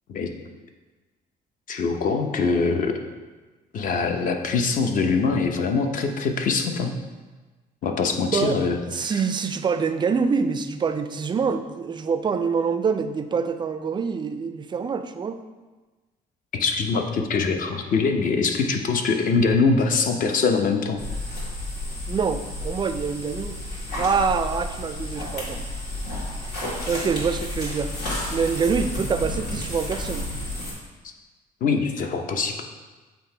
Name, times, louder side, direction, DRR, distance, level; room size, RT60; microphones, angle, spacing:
voice 1, 1.7-3.0 3.7-6.9 7.8-8.8 9.0-9.2 16.5-21.0 31.6-32.5, left 4 dB, 50° left, 5 dB, 0.7 m, -23 dB
voice 2, 8.9-15.4 22.1-23.6 24.0-25.7 26.9-27.9 28.3-30.2, right 5 dB, 25° right, 9 dB, 0.3 m, -25 dB
sound 1, 21.0-30.7, left 1 dB, 90° left, 1.9 m, -31 dB
7.7 x 2.8 x 4.4 m, 1.3 s
cardioid pair, 110°, 17 cm